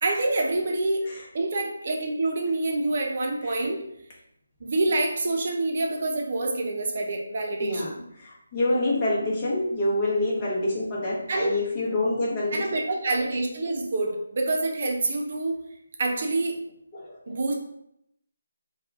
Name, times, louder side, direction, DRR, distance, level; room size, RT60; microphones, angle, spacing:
voice 1, 0.0-1.0 1.3-3.9 4.6-8.0 11.3-11.6 12.5-15.6 16.0-16.6 17.3-17.5, right 2 dB, 45° right, 1 dB, 0.7 m, -27 dB
voice 2, 8.2-12.8 16.9-17.2, left 2 dB, 25° left, -5 dB, 1.0 m, -26 dB
2.8 x 2.3 x 3.5 m, 0.76 s
figure-of-eight pair, 165°, 0 cm